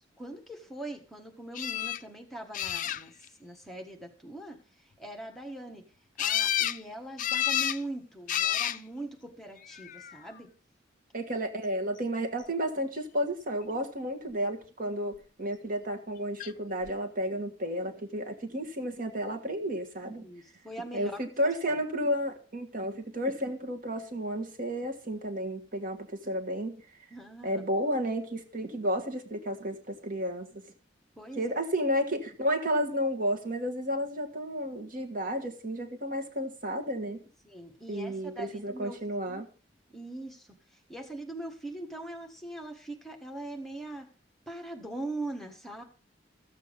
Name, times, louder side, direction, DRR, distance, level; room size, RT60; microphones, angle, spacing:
voice 1, 0.2-3.1 3.4-5.8 6.2-10.5 20.0-21.3 21.7-21.8 27.1-27.7 31.1-31.6 37.4-39.0 39.3-39.4 39.9-44.1 44.5-45.8, right 2 dB, ahead, 3 dB, 1.6 m, -41 dB
sound 1, 1.5-2.0 2.5-3.3 6.2-6.8 7.2-7.8 8.3-8.8 9.7-10.2 16.4-16.5 16.8-16.9, left 11 dB, 45° left, 0.4 m, -29 dB
voice 2, 11.1-20.2 20.9-26.8 27.4-30.6 31.4-37.2 37.9-39.5, equal, 50° right, 4 dB, 1.6 m, -32 dB
14.0 x 7.4 x 5.3 m, 0.37 s
head